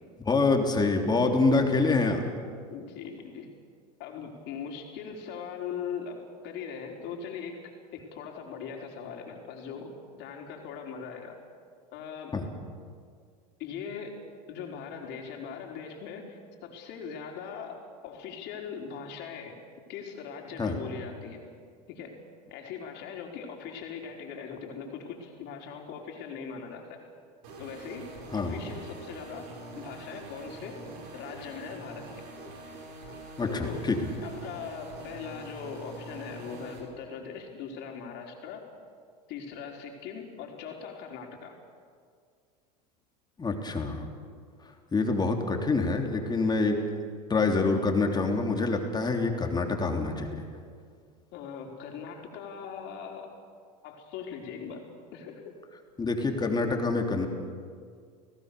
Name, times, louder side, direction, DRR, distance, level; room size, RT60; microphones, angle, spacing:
voice 1, 0.3-2.2 12.3-12.4 20.6-20.7 28.3-28.6 33.4-34.0 43.4-44.1 44.9-46.8 47.3-50.4 56.0-57.3, left 3 dB, 20° left, 3 dB, 3.3 m, -26 dB
voice 2, 2.7-3.5 4.0-9.9 10.1-11.4 11.9-12.4 13.6-14.2 14.5-19.5 19.9-21.4 21.9-22.2 22.5-27.0 27.6-28.1 28.3-30.8 31.1-32.1 33.5-33.8 34.2-38.6 39.3-41.6 51.3-53.3 53.8-54.8 55.1-55.6, left 6 dB, 55° left, 1 dB, 4.4 m, -40 dB
sound 1, 27.4-36.8, right 2 dB, 70° right, 5.4 m, -44 dB
29.5 x 17.5 x 6.9 m, 2.1 s
hypercardioid pair, 90°, 21 cm